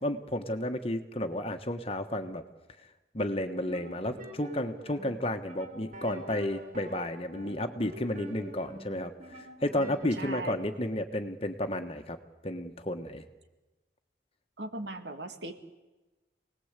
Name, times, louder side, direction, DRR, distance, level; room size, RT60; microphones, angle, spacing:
voice 1, 0.0-2.4 3.1-12.2 12.4-13.2, left 1 dB, 30° left, 6 dB, 1.4 m, -32 dB
sound 1, 3.5-10.9, right 1 dB, 45° right, 3.9 m, -46 dB
voice 2, 10.1-10.6 14.6-15.5, right 2 dB, 80° right, 6 dB, 2.3 m, -38 dB
28.5 x 19.5 x 8.3 m, 1.1 s
head